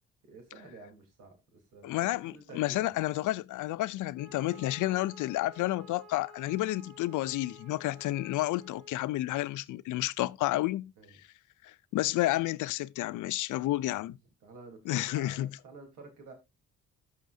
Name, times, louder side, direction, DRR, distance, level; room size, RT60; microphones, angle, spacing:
voice 1, 0.2-2.9 11.0-11.2 13.9-14.1 14.4-16.3, right 3 dB, 90° right, 3.6 m, -51 dB
voice 2, 1.8-10.9 11.6-14.2 14.9-15.5, left 16 dB, 80° left, 0.5 m, -31 dB
Wind instrument woodwind instrument, 4.1-8.9, equal, 55° right, 3.1 m, -53 dB
13.5 x 5.8 x 2.7 m
cardioid pair, 90°, 30 cm